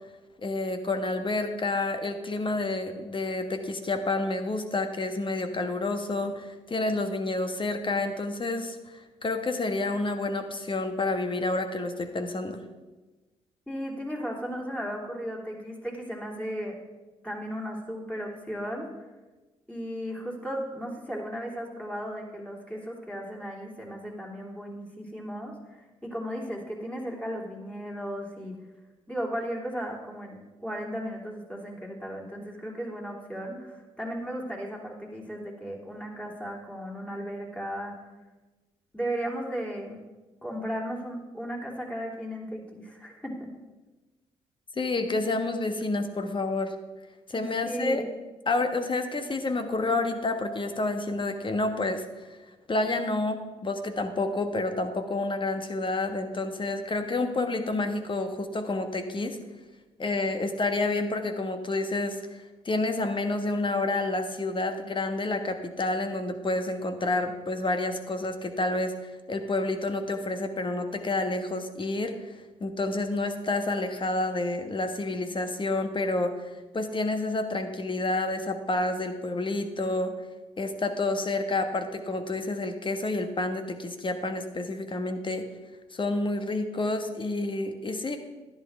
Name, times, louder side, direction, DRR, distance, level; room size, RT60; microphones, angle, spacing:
voice 1, 0.4-12.6 44.8-46.7 47.3-48.0 48.5-52.3 52.7-59.4 60.0-62.2 62.6-76.5 76.7-80.1 80.6-85.5 85.9-88.2, left 2 dB, 35° left, 7 dB, 1.3 m, -29 dB
voice 2, 13.7-16.7 17.2-18.9 19.7-28.5 29.1-38.1 38.9-40.0 40.4-43.5 47.3-48.1, equal, 10° left, -2 dB, 3.1 m, -35 dB
11.0 x 11.0 x 3.5 m, 1.2 s
hypercardioid pair, 45°, 15 cm